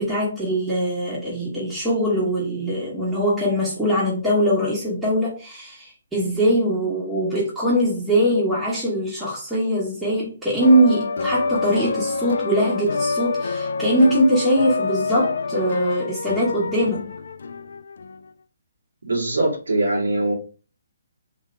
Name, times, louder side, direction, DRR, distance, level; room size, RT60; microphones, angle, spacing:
voice 1, 0.0-17.1, equal, 5° right, 1.4 m, -21 dB
sound 1, 10.6-18.2, left 4 dB, 70° left, 0.4 m, -27 dB
voice 2, 19.1-20.3, right 2 dB, 85° right, 2.1 m, -22 dB
3.9 x 2.8 x 3.4 m
hypercardioid pair, 155°, 0 cm